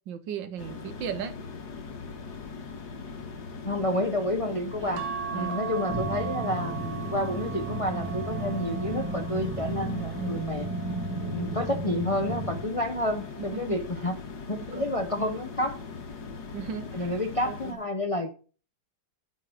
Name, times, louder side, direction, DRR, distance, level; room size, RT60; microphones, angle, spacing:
voice 1, 0.1-1.4 4.8-5.0 5.3-5.6 13.4-13.8 14.6-14.9 16.5-17.1 17.5-17.8, right 8 dB, 85° right, 1.7 m, -36 dB
Large Electricity Generator, 0.6-17.7, left 4 dB, 60° left, 1.9 m, -40 dB
voice 2, 3.6-5.0 5.3-10.7 11.3-14.2 14.5-15.8 16.9-18.3, left 1 dB, 45° left, 0.4 m, -30 dB
sound 1, 5.0-11.6 12.2-13.6 14.9-15.3 15.6-15.7, right 8 dB, 55° right, 1.7 m, -39 dB
sound 2, 5.9-12.7, right 3 dB, 5° right, 2.4 m, -34 dB
9.2 x 4.7 x 6.4 m
omnidirectional pair, 1.9 m